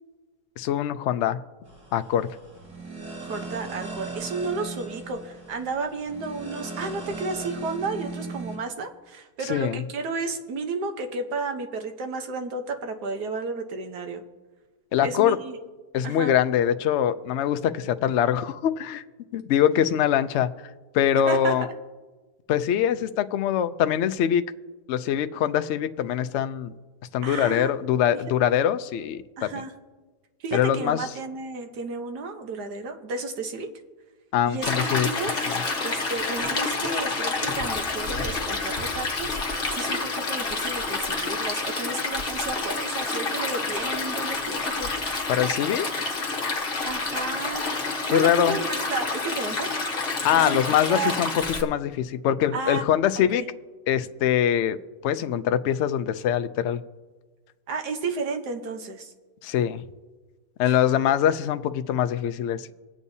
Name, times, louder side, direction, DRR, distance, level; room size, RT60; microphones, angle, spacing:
voice 1, 0.6-1.4 1.9-2.3 9.5-9.8 14.9-15.4 15.9-19.0 19.3-20.5 20.9-21.7 22.5-24.4 24.9-26.7 27.1-29.5 30.5-31.0 34.3-35.1 35.4-35.6 45.3-46.1 48.1-48.6 50.2-51.3 51.6-53.4 53.9-54.8 55.0-56.8 59.4-59.8 60.6-62.7, left 10 dB, 75° left, 10 dB, 0.6 m, -23 dB
sound 1, 1.7-8.6, right 3 dB, 55° right, 2.2 m, -38 dB
voice 2, 3.2-14.2 15.0-15.6 16.0-16.4 21.3-21.5 27.2-27.7 29.4-29.7 30.4-33.7 34.5-35.5 35.8-44.9 46.8-47.6 48.1-49.7 50.3-50.6 50.9-51.3 52.5-52.9 53.1-53.4 57.7-59.1 60.6-60.8 61.1-61.2, right 3 dB, 75° right, 5 dB, 1.5 m, -32 dB
Stream, 34.6-51.6, left 3 dB, 40° left, 1.3 m, -28 dB
25.0 x 8.4 x 2.7 m, 1.3 s
omnidirectional pair, 1.7 m